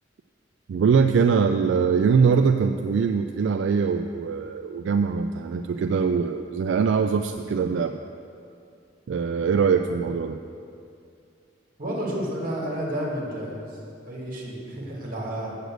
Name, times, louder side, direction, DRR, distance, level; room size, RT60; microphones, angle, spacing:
voice 1, 0.7-8.0 9.1-10.4, right 5 dB, 80° right, 7 dB, 0.3 m, -22 dB
voice 2, 11.8-15.6, equal, 50° right, -3 dB, 2.0 m, -31 dB
8.0 x 6.6 x 6.3 m, 2.6 s
head